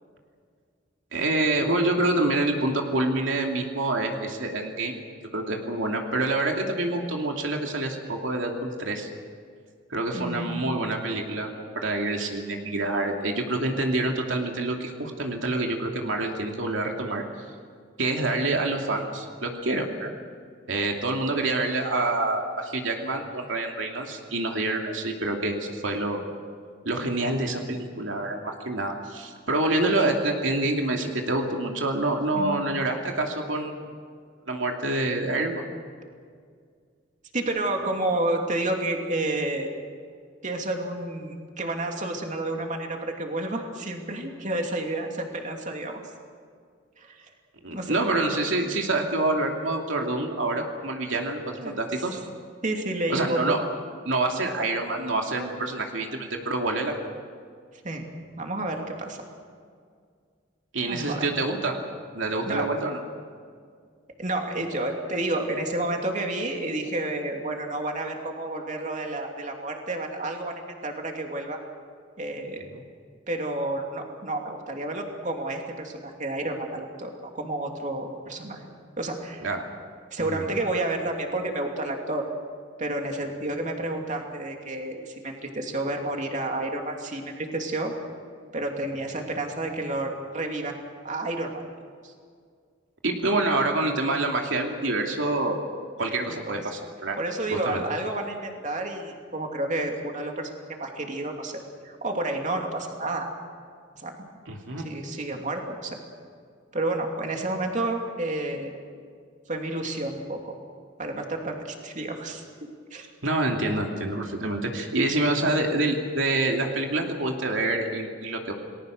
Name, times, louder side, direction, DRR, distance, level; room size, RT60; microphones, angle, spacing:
voice 1, 1.1-5.0 5.3-9.1 9.9-17.2 18.0-20.1 20.7-26.3 26.8-33.9 34.5-35.6 47.6-52.2 53.1-53.6 54.1-56.9 60.7-61.8 62.1-63.0 72.7-72.8 79.4-79.6 80.2-80.4 93.0-95.6 96.0-97.2 97.7-97.8 104.5-104.9 113.2-118.5, right 2 dB, 85° right, 2 dB, 2.7 m, -27 dB
voice 2, 10.1-10.6 32.4-32.8 37.3-39.8 40.4-46.0 47.0-47.3 47.7-48.0 51.6-52.1 52.6-53.6 57.8-58.1 58.4-59.2 60.9-61.3 62.4-62.7 64.2-71.6 72.2-72.7 73.3-78.6 79.0-79.4 80.1-82.3 82.8-88.0 88.5-90.8 91.0-91.5 92.0-92.1 96.5-96.6 97.2-103.3 103.9-104.3 104.8-106.0 106.7-108.7 109.5-110.6 111.0-112.4 112.9-113.1, right 2 dB, 40° right, 2 dB, 2.9 m, -30 dB
29.5 x 19.5 x 6.5 m, 2.1 s
head